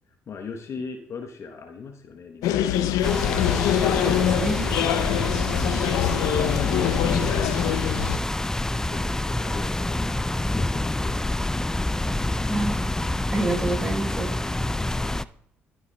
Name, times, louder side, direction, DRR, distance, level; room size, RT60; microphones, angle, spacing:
voice 1, 0.3-3.1 4.9-5.3 8.1-8.2 8.7-10.2 10.6-11.6, left 5 dB, 50° left, 5 dB, 0.9 m, -39 dB
sound 1, 2.4-8.2, left 10 dB, 70° left, 0.5 m, -24 dB
sound 2, 3.0-15.2, left 1 dB, 10° left, 0.4 m, -27 dB
voice 2, 4.0-4.7 12.5-12.8 13.3-14.3, right 2 dB, 10° right, 0 dB, 4.0 m, -27 dB
13.5 x 8.3 x 2.2 m, 0.69 s
hypercardioid pair, 55°, 6 cm